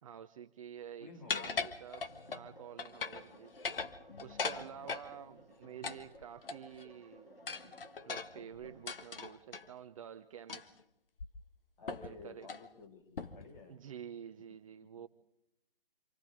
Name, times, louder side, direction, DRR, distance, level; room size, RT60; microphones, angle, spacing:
voice 1, 0.0-3.5 4.2-7.6 8.0-10.8 12.0-12.5 13.7-15.1, right 9 dB, 35° right, 9 dB, 0.7 m, -49 dB
voice 2, 1.0-1.7 4.1-5.0 11.8-13.8 14.8-15.1, left 4 dB, 50° left, 2 dB, 5.4 m, -53 dB
sound 1, 1.3-2.5 2.8-3.3 3.5-5.1 5.8-6.8 7.5-9.7 10.5-10.8 11.2-11.3 11.9-12.1 12.4-12.7 13.2-13.5, left 5 dB, 70° left, 1.7 m, -39 dB
sound 2, 2.1-8.9, equal, 90° left, 6.2 m, -57 dB
28.0 x 27.5 x 3.6 m, 0.85 s
figure-of-eight pair, 145°, 29 cm